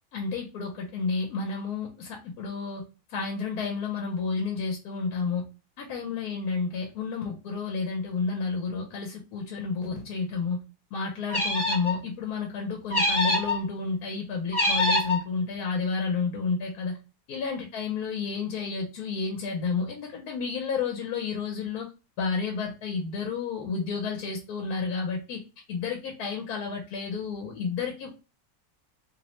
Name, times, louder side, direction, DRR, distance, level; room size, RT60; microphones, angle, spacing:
voice 1, 0.1-2.8 3.1-5.4 5.8-10.6 10.9-17.0 17.3-21.9 22.2-25.4 25.7-28.1, left 4 dB, 80° left, 1 dB, 1.1 m, -31 dB
sound 1, 11.3-12.0 12.9-13.6 14.5-15.2, left 2 dB, 25° left, 0.7 m, -25 dB
2.7 x 2.0 x 2.9 m, 0.31 s
omnidirectional pair, 1.6 m